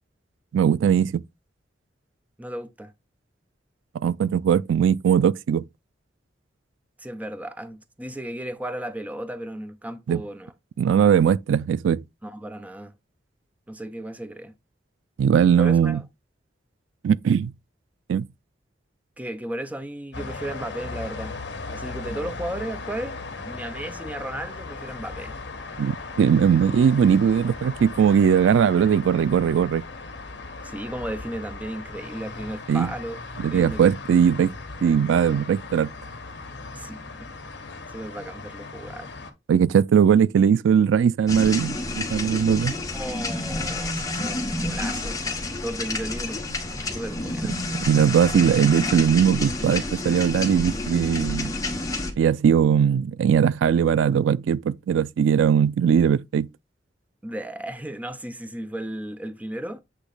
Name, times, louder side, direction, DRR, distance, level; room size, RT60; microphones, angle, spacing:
voice 1, 0.5-1.2 4.0-5.6 10.1-10.2 10.8-12.0 15.2-16.0 17.0-17.5 18.1-18.3 25.8-29.8 32.7-32.9 33.4-34.5 34.8-35.9 39.5-42.7 47.9-51.5 52.2-56.5, right 7 dB, 90° right, 0.3 m, -20 dB
voice 2, 2.4-2.9 7.0-10.5 12.2-12.9 13.7-14.5 15.6-16.0 19.2-21.4 21.7-25.4 30.6-33.2 33.5-33.9 36.7-37.3 37.9-39.1 42.9-45.2 45.6-46.4 46.9-47.6 57.2-59.8, right 1 dB, 10° right, 0.5 m, -34 dB
sound 1, 20.1-39.3, left 3 dB, 65° left, 1.3 m, -37 dB
sound 2, 41.3-52.1, left 2 dB, 20° left, 1.0 m, -29 dB
8.1 x 3.0 x 3.9 m
head